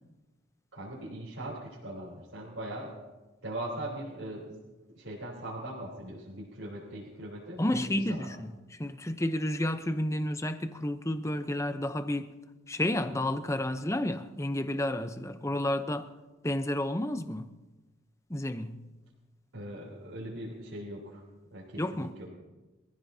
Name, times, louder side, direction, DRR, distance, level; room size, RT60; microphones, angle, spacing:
voice 1, 0.7-3.0 3.4-4.6 4.9-8.3 19.5-21.2 21.5-22.3, right 1 dB, 75° right, 3.6 m, -40 dB
voice 2, 7.6-8.5 8.8-12.3 12.7-16.1 16.4-17.5 18.3-18.8 21.8-22.1, left 1 dB, 15° left, 0.7 m, -31 dB
25.0 x 15.0 x 2.8 m
head